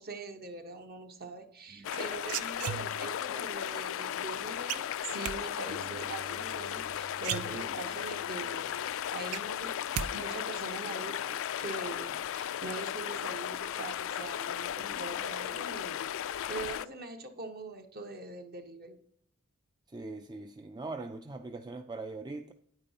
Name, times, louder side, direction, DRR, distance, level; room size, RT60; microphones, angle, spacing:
voice 1, 0.0-16.2 16.5-19.0, right 3 dB, 45° right, 1.1 m, -43 dB
sound 1, 1.8-16.9, left 10 dB, 65° left, 0.3 m, -36 dB
sound 2, 1.9-3.2 4.7-5.4 6.8-6.9 7.2-8.0 8.4-8.5 8.8-10.1 10.4-10.8, right 9 dB, 90° right, 0.5 m, -36 dB
Acoustic guitar, 5.7-10.1, right 1 dB, 70° right, 1.5 m, -53 dB
voice 2, 19.9-22.5, right 3 dB, 20° right, 0.4 m, -41 dB
9.6 x 8.7 x 2.8 m
head